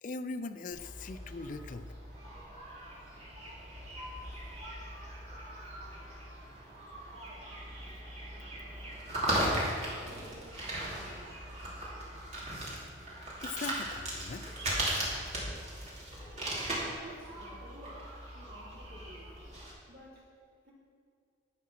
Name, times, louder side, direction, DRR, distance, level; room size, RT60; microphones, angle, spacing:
voice 1, 0.0-1.9 13.4-14.4 16.7-16.8, left 3 dB, 40° left, 11 dB, 0.4 m, -40 dB
sound 1, 0.7-19.7, right 1 dB, 35° right, 2.9 m, -38 dB
voice 2, 9.2-11.5 17.0-19.3 19.9-20.3 20.6-20.7, equal, 55° right, -6 dB, 3.6 m, -52 dB
11.0 x 8.5 x 5.8 m, 2.2 s
head